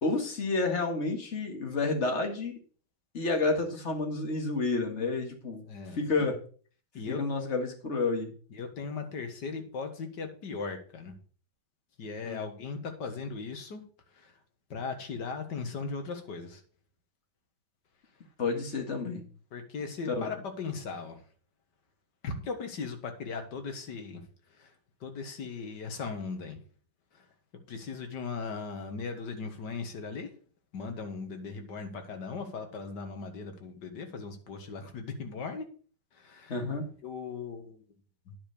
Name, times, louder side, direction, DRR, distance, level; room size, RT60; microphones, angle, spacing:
voice 1, 0.0-2.5 3.1-5.6 5.9-6.4 7.1-8.3 12.2-12.4 18.4-19.2 20.1-20.4 36.5-36.8, left 3 dB, 35° left, 4 dB, 2.0 m, -30 dB
voice 2, 5.7-6.0 6.9-7.2 8.5-11.2 12.0-13.8 14.2-14.3 14.7-16.6 19.5-21.2 22.2-24.2 24.6-24.7 25.0-26.6 27.7-30.3 30.7-35.6 36.2-36.5 37.0-37.8 38.3-38.4, left 4 dB, 60° left, 6 dB, 2.1 m, -38 dB
9.8 x 5.2 x 6.7 m, 0.42 s
omnidirectional pair, 2.2 m